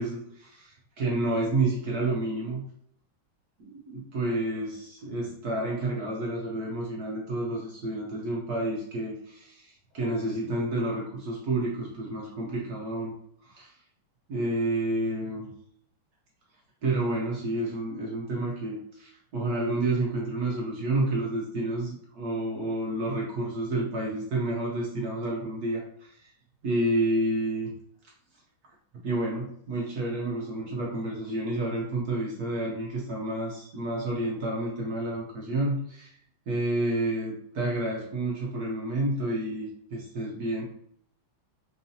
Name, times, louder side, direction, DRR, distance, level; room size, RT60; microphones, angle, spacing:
voice 1, 0.0-2.6 3.6-13.1 13.4-13.8 14.3-15.5 16.8-26.3 26.6-27.7 29.0-36.1 36.5-40.6, right 2 dB, 60° right, -3 dB, 1.0 m, -30 dB
4.7 x 2.6 x 2.7 m, 0.69 s
omnidirectional pair, 2.2 m